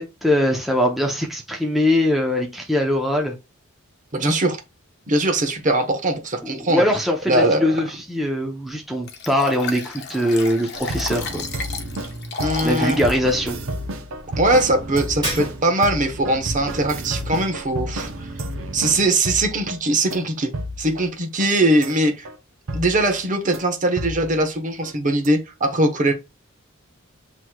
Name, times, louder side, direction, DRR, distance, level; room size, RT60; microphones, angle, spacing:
voice 1, 0.0-3.3 6.4-11.4 12.6-13.6, left 1 dB, ahead, 0.6 m, -22 dB
voice 2, 4.1-4.6 5.1-6.8 7.3-7.8 12.4-13.0 14.3-18.3 18.7-20.5 20.8-22.3 22.7-26.1, right 1 dB, 40° right, 0.9 m, -21 dB
Liquid, 9.1-13.2 13.7-13.8, left 4 dB, 55° left, 1.0 m, -32 dB
sound 1, 10.7-19.8 20.1-20.2 20.5-21.1 21.4-21.5 21.8-21.9 22.2-22.4 22.7-23.2 23.5-23.6 24.0-24.5 24.8-24.9 25.2-25.3, right 1 dB, 75° right, 0.7 m, -31 dB
Shatter, 15.2-16.0, right 2 dB, 20° right, 2.4 m, -29 dB
7.5 x 3.1 x 2.2 m
head